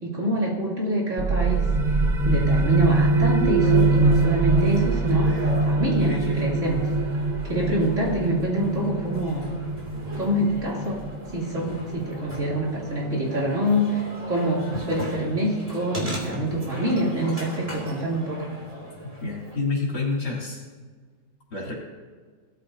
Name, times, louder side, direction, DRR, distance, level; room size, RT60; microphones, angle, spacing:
voice 1, 0.0-1.7 2.2-6.9 7.5-9.4 10.2-11.1 11.3-18.5, right 1 dB, 45° right, -4 dB, 3.3 m, -26 dB
sound 1, 1.2-12.6, right 3 dB, 65° right, 0.4 m, -23 dB
sound 2, 3.6-19.6, right 1 dB, 20° right, 2.7 m, -38 dB
voice 2, 19.2-20.6 21.5-21.7, left 3 dB, 65° left, -4 dB, 4.1 m, -28 dB
18.5 x 13.5 x 2.7 m, 1.5 s
omnidirectional pair, 1.9 m